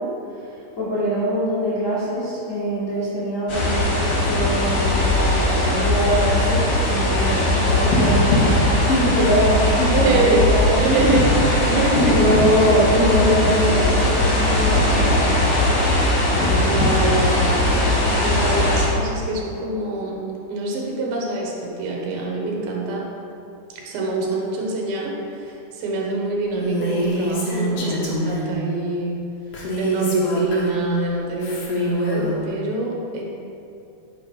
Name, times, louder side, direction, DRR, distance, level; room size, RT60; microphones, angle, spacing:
voice 1, 0.3-10.8 12.0-15.4 16.3-16.8, equal, 70° left, -13 dB, 0.7 m, -23 dB
sound 1, 3.5-18.9, left 1 dB, 50° left, 2.4 m, -19 dB
voice 2, 9.9-10.5 10.8-12.3 16.5-17.6 18.1-20.2 20.5-23.1 23.7-29.2 29.8-33.2, right 2 dB, 75° right, -2 dB, 2.8 m, -25 dB
Female speech woman speaking, 26.6-28.5 29.5-30.9 31.4-32.4, equal, 85° left, 1.3 m, -25 dB
5.8 x 4.8 x 5.3 m, 2.6 s
omnidirectional pair, 4.4 m